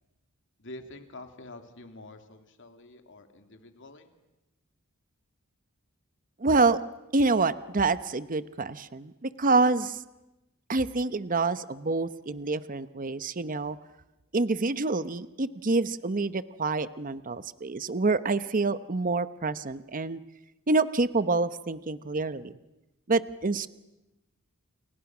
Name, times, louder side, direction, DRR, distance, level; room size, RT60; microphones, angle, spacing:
voice 1, 0.6-4.1, left 2 dB, 60° left, 6 dB, 2.8 m, -47 dB
voice 2, 6.4-6.8 7.1-10.0 10.7-13.8 14.3-20.2 20.7-22.5 23.1-23.7, right 3 dB, 40° right, 13 dB, 0.9 m, -27 dB
29.5 x 29.0 x 6.1 m, 0.98 s
head